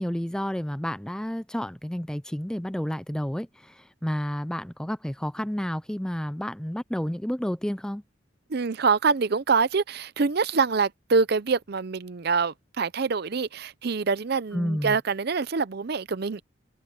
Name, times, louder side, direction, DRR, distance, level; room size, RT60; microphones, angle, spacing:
voice 1, 0.0-8.0 14.5-15.0, equal, 5° left, 0.4 m, -30 dB
voice 2, 8.5-16.4, right 4 dB, 55° right, 0.6 m, -25 dB
head